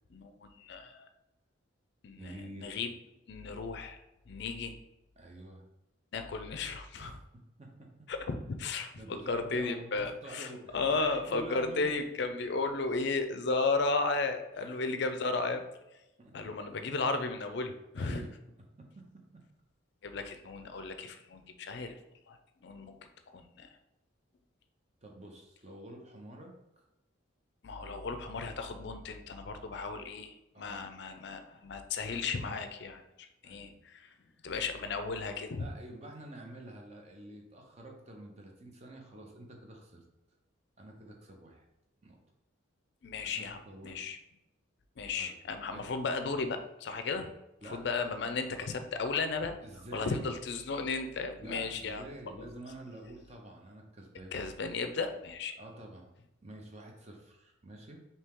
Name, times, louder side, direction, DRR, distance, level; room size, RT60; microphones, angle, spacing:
voice 1, 0.1-1.1 2.0-2.9 3.3-4.0 4.3-4.8 6.1-7.2 8.1-15.6 16.3-18.2 20.0-22.0 22.3-23.0 23.3-23.7 27.6-34.1 34.4-35.7 43.0-44.2 45.0-47.3 47.7-49.6 49.9-52.1 52.4-52.5 54.3-55.6, left 3 dB, 55° left, 8 dB, 0.4 m, -35 dB
voice 2, 2.2-2.8 5.2-5.7 7.0-7.9 8.9-12.0 16.2-16.4 18.0-18.3 18.8-19.2 20.7-20.9 25.0-26.8 27.8-28.0 30.5-30.9 33.4-33.8 35.5-40.0 40.8-41.6 42.0-42.2 43.2-44.0 45.2-45.3 45.7-45.9 47.6-47.8 49.6-50.3 51.4-54.4 55.6-56.1 56.4-58.1, right 1 dB, 35° right, 1 dB, 0.7 m, -48 dB
4.4 x 2.8 x 3.6 m, 0.92 s
head